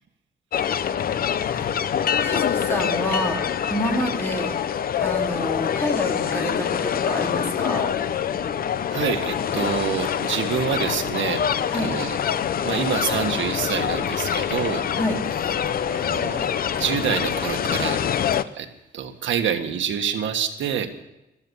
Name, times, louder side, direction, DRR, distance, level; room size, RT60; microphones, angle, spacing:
sound 1, 0.5-18.4, left 8 dB, 50° left, 0.6 m, -25 dB
voice 1, 1.5-1.9 2.2-3.4 3.7-4.6 5.0-7.9 11.7-11.9 14.9-15.2, equal, 10° left, 1 dB, 2.6 m, -28 dB
voice 2, 8.9-11.4 11.7-12.2 12.6-14.9 15.9-18.0 18.5-18.7 18.9-20.9, right 8 dB, 80° right, 5 dB, 1.6 m, -27 dB
14.5 x 12.5 x 7.2 m, 0.92 s
wide cardioid pair, 170°, 20 cm